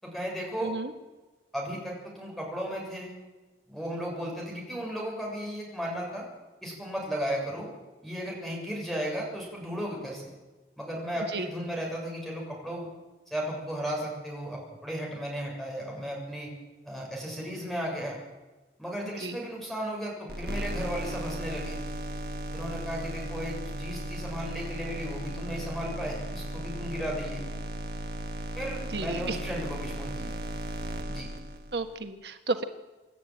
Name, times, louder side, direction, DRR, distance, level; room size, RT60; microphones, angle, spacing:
voice 1, 0.0-0.7 1.5-3.1 3.7-6.3 6.6-7.7 8.0-10.3 10.8-12.9 13.3-16.5 16.9-18.2 18.8-21.8 22.5-27.4 28.6-30.3 31.1-31.3, equal, ahead, -2 dB, 7.0 m, -35 dB
sound 1, 20.3-31.9, right 1 dB, 60° right, 1.6 m, -36 dB
voice 2, 28.9-29.4 31.7-32.6, right 3 dB, 80° right, 7 dB, 1.4 m, -32 dB
27.0 x 12.0 x 9.2 m, 1.2 s
head